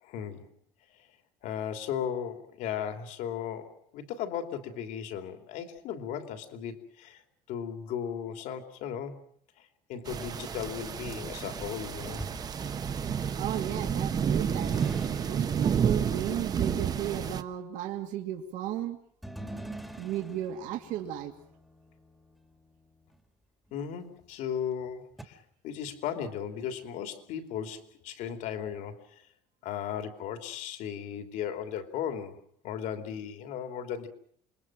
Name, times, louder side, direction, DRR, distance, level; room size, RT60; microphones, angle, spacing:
voice 1, 0.0-0.5 1.0-1.1 1.4-7.2 7.5-9.2 9.6-12.2 23.7-29.3 29.6-34.1, left 8 dB, 65° left, 7 dB, 2.9 m, -36 dB
sound 1, 10.1-17.4, right 7 dB, 25° right, 1.0 m, -30 dB
sound 2, 10.8-13.3 14.5-15.8 19.2-23.2 23.7-23.8 25.2-25.3, right 1 dB, ahead, 1.7 m, -45 dB
voice 2, 13.4-19.0 20.0-21.3, right 11 dB, 70° right, 5 dB, 2.4 m, -35 dB
28.0 x 21.5 x 6.2 m, 0.64 s
cardioid pair, 165°, 14 cm